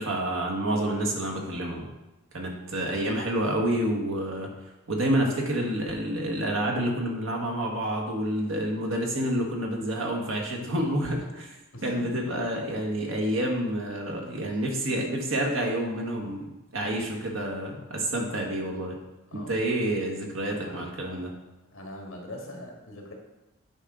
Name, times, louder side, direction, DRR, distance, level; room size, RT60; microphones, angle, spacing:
voice 1, 0.0-1.9 2.3-4.5 4.9-11.5 11.8-19.0 19.3-21.3, right 1 dB, 65° right, 1 dB, 1.5 m, -28 dB
voice 2, 11.7-12.4 19.3-19.6 20.4-21.3 21.7-23.1, left 1 dB, 65° left, 0 dB, 1.8 m, -42 dB
9.8 x 5.5 x 3.8 m, 1.0 s
head